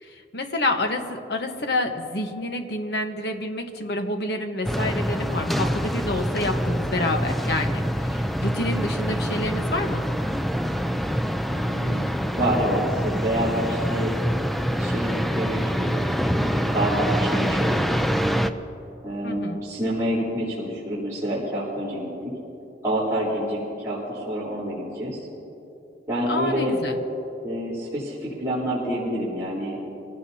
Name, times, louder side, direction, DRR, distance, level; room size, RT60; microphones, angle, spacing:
voice 1, 0.0-10.0 19.2-19.6 26.3-27.0, left 2 dB, 65° left, 5 dB, 1.2 m, -28 dB
sound 1, 4.6-18.5, equal, ahead, 0.4 m, -25 dB
voice 2, 11.5-12.0 12.4-14.1 14.8-16.1 16.3-17.8 19.0-22.1 22.8-23.6 23.8-25.2 26.1-26.7 27.4-29.8, right 1 dB, 15° right, -12 dB, 3.7 m, -27 dB
25.5 x 17.0 x 2.9 m, 2.9 s
head